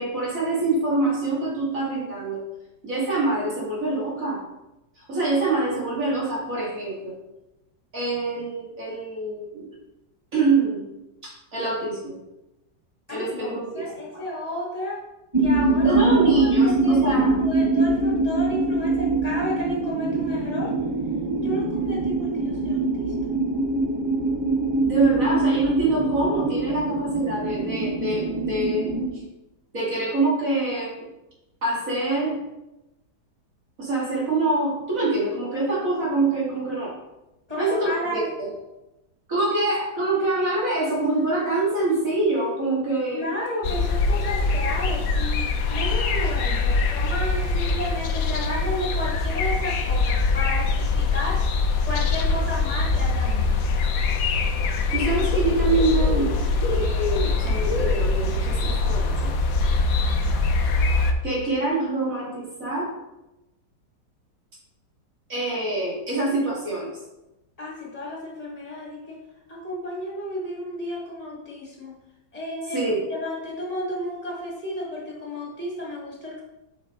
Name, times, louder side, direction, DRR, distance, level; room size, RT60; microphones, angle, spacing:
voice 1, 0.0-2.4 2.8-4.4 5.0-7.1 7.9-9.8 10.3-10.8 11.2-12.2 13.1-14.2 15.8-17.3 17.9-18.0 24.8-29.2 29.7-31.1 31.6-32.4 33.8-36.9 37.6-38.5 39.3-43.3 54.9-59.3 61.2-62.9 65.3-66.9 72.7-73.1, right 2 dB, 45° right, -6 dB, 2.7 m, -25 dB
voice 2, 13.1-15.0 15.4-20.7 21.4-23.1 26.7-26.8 37.5-38.3 43.1-51.5 51.9-53.6 67.6-69.2 69.5-71.9 72.3-76.4, left 1 dB, 20° left, -4 dB, 2.2 m, -32 dB
sound 1, 15.3-29.1, right 3 dB, 20° right, 0.7 m, -23 dB
sound 2, 43.6-61.1, left 3 dB, 60° left, 1.1 m, -23 dB
8.7 x 6.0 x 3.8 m, 0.96 s
omnidirectional pair, 2.0 m